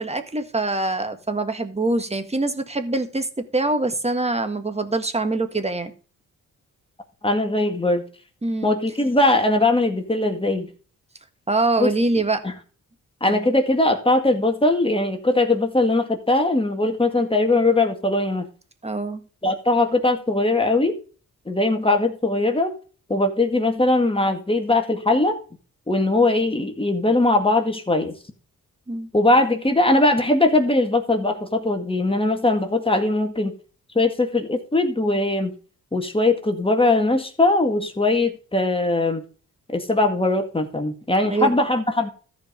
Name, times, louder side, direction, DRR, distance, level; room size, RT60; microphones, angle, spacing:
voice 1, 0.0-5.9 8.4-8.8 11.5-12.4 13.3-13.5 18.8-19.2 28.9-29.1 41.2-41.5, right 2 dB, 20° right, 1.7 m, -24 dB
voice 2, 7.2-8.0 8.6-10.7 11.8-11.9 12.4-12.5 13.2-18.5 19.4-21.0 21.5-22.7 23.1-25.4 25.9-28.1 29.1-33.5 34.0-35.5 35.9-39.2 39.7-42.1, left 2 dB, 15° left, 1.9 m, -20 dB
14.0 x 5.1 x 5.1 m
cardioid pair, 95°, 33 cm